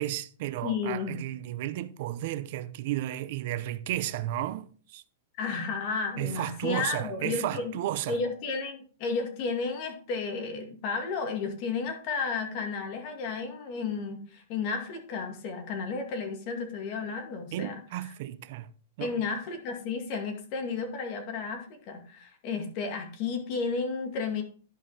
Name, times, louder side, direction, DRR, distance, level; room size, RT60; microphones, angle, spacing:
voice 1, 0.0-5.0 6.2-8.2 17.5-18.7 19.0-19.1, right 14 dB, 50° right, 0.7 m, -33 dB
voice 2, 0.6-1.2 5.4-7.8 8.1-18.1 19.0-24.4, left 4 dB, 40° left, 2.2 m, -33 dB
11.0 x 5.3 x 4.2 m
supercardioid pair, 155°, 0 cm